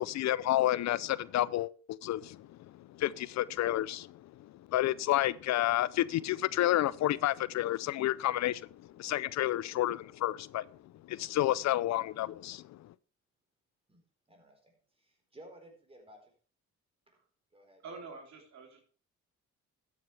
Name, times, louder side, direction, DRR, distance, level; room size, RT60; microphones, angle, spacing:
voice 1, 0.0-2.5 3.0-4.2 4.7-8.7 9.0-10.7 11.1-12.6, left 14 dB, 65° left, 0.4 m, -30 dB
voice 2, 14.3-16.3 17.5-17.8, right 1 dB, 20° right, 4.1 m, -55 dB
voice 3, 17.8-18.8, right 4 dB, 65° right, 3.3 m, -46 dB
12.5 x 9.3 x 3.3 m
cardioid pair, 90°, 30 cm